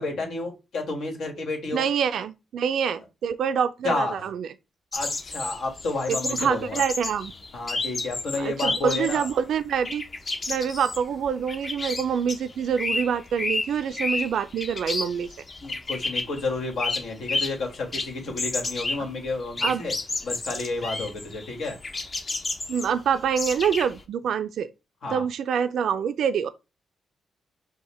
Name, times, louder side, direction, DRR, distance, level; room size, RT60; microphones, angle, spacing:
voice 1, 0.0-1.8 3.8-4.2 4.9-6.8 7.5-9.3 15.6-19.9 20.2-21.8 25.0-25.2, left 3 dB, 70° left, 1.5 m, -31 dB
voice 2, 1.7-4.5 6.1-7.3 8.4-10.0 10.5-15.3 19.6-19.8 22.7-24.7 25.1-26.5, right 7 dB, 75° right, 0.3 m, -26 dB
sound 1, 4.9-9.4 9.6-17.6 17.9-24.0, left 3 dB, 35° left, 0.7 m, -31 dB
5.5 x 2.2 x 4.2 m
cardioid pair, 105°, 0 cm